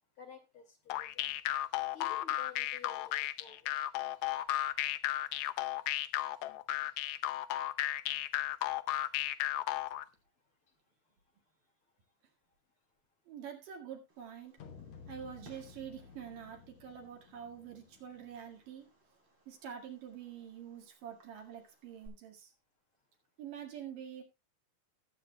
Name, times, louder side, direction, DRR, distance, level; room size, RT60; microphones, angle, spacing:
voice 1, 0.2-1.3 1.9-3.7, left 6 dB, 45° left, 3 dB, 2.8 m, -52 dB
sound 1, 0.9-10.0, left 14 dB, 80° left, 1.7 m, -34 dB
voice 2, 13.3-14.5 15.1-18.9 19.5-22.5 23.4-24.2, right 8 dB, 80° right, 2 dB, 3.5 m, -46 dB
Fireworks, 14.1-22.1, right 1 dB, 35° right, 4.4 m, -64 dB
sound 2, 14.6-18.6, left 6 dB, 60° left, 2.1 m, -55 dB
19.5 x 8.5 x 2.2 m, 0.25 s
omnidirectional pair, 3.8 m